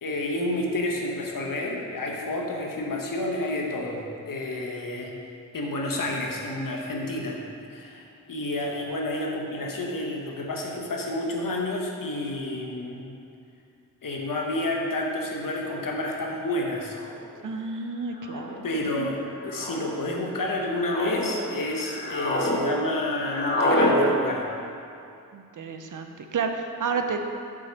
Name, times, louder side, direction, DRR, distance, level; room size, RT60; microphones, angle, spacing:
voice 1, 0.0-5.1 5.5-7.4 7.7-13.1 14.0-17.0 17.6-17.8 18.6-24.5, left 1 dB, 70° left, -1 dB, 1.1 m, -30 dB
sound 1, 17.0-17.3 18.2-18.6 19.5-19.9 20.5-21.2 21.7-22.6 22.8-23.9, left 1 dB, 30° left, 1.3 m, -27 dB
voice 2, 17.4-18.6 19.0-19.1 25.3-27.2, right 5 dB, 65° right, 5 dB, 0.7 m, -30 dB
6.1 x 4.3 x 6.2 m, 2.5 s
cardioid pair, 50°, 34 cm